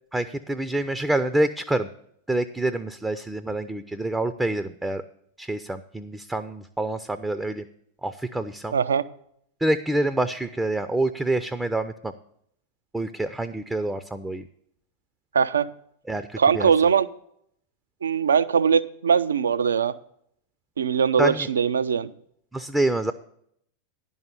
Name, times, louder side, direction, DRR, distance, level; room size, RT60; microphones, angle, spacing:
voice 1, 0.1-1.9 2.3-5.0 5.4-7.7 8.0-8.8 9.6-12.1 12.9-14.4 16.1-16.3 16.5-16.7 21.2-21.5 22.5-23.1, right 2 dB, 5° right, 10 dB, 0.4 m, -26 dB
voice 2, 8.7-9.1 15.3-15.7 16.4-17.1 18.0-19.9 20.8-22.1, right 6 dB, 70° right, 14 dB, 0.4 m, -21 dB
11.0 x 5.5 x 6.9 m, 0.69 s
figure-of-eight pair, 90°, 0 cm